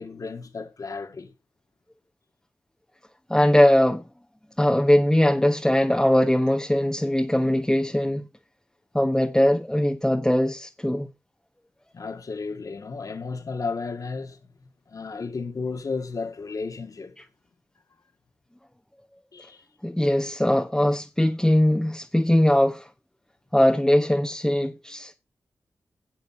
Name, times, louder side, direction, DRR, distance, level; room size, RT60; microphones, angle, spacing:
voice 1, 0.0-1.3 11.9-14.4 14.9-17.2 19.3-19.7, left 4 dB, 65° left, 2.0 m, -33 dB
voice 2, 3.3-4.0 4.6-8.2 8.9-11.1 19.8-22.9 23.5-25.1, left 1 dB, 10° left, 1.3 m, -21 dB
12.0 x 7.9 x 4.4 m
cardioid pair, 40°, 6 cm